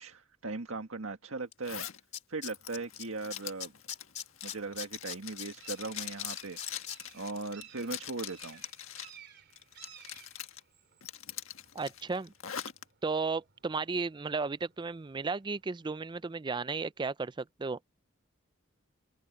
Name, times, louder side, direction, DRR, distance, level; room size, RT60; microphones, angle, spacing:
voice 1, 0.0-1.9 2.3-3.7 4.4-6.9 7.1-8.6, right 3 dB, 85° right, 1.7 m, -39 dB
Tools, 1.5-1.6 1.9-3.0 3.3-7.0 7.4-7.5, left 8 dB, 35° left, 2.9 m, -40 dB
Zipper (clothing), 1.6-2.0 2.4-9.2 9.5-10.6 11.0-12.8, left 10 dB, 80° left, 1.6 m, -43 dB
sound 1, 2.5-16.2, right 8 dB, 55° right, 3.2 m, -59 dB
voice 2, 11.7-12.3 13.0-17.8, right 4 dB, 20° right, 0.4 m, -34 dB
head